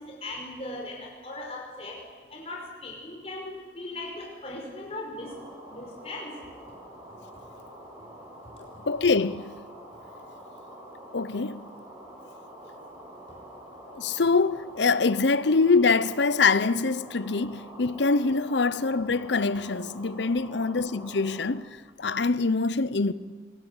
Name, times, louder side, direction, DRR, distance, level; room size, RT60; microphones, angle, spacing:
voice 1, 0.0-2.0 2.3-5.3 5.7-6.3, left 2 dB, 35° left, 5.1 m, -38 dB
sound 1, 5.2-21.5, equal, 15° right, 7.0 m, -46 dB
voice 2, 8.9-9.5 11.1-11.7 13.9-23.1, left 4 dB, 80° left, 0.8 m, -24 dB
27.0 x 21.0 x 8.1 m
head